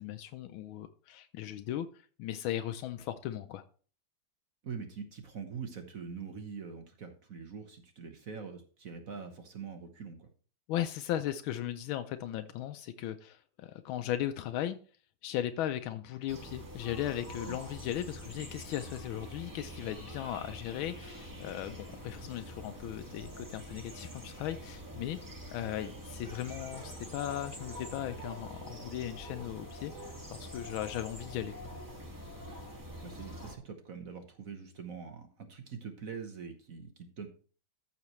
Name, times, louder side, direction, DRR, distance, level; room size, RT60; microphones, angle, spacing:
voice 1, 0.0-1.9 2.2-3.6 10.7-14.8 15.2-25.2 25.5-31.5, left 12 dB, 85° left, 9 dB, 1.4 m, -37 dB
voice 2, 4.6-10.3 17.5-17.6 33.0-37.3, right 6 dB, 50° right, 6 dB, 1.3 m, -44 dB
sound 1, 16.3-33.6, equal, 10° right, 1.4 m, -45 dB
14.0 x 5.9 x 3.1 m, 0.41 s
omnidirectional pair, 2.2 m